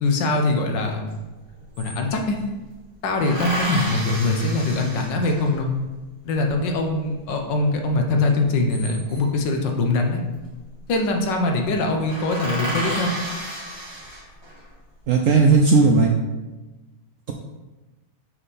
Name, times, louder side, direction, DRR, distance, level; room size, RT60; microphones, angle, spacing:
voice 1, 0.0-1.1 1.8-2.4 3.0-5.7 6.2-10.2 10.9-13.3, left 2 dB, 85° left, 3 dB, 1.6 m, -22 dB
sound 1, 1.1-1.2 1.4-2.5 3.2-5.7 8.4-9.4 10.6-10.9 11.2-11.4 11.7-11.8 12.1-14.6 15.2-15.9, equal, 35° right, 2.1 m, -32 dB
voice 2, 15.1-16.1, right 4 dB, 70° right, 2 dB, 0.7 m, -15 dB
5.5 x 5.3 x 4.1 m, 1.2 s
omnidirectional pair, 1.9 m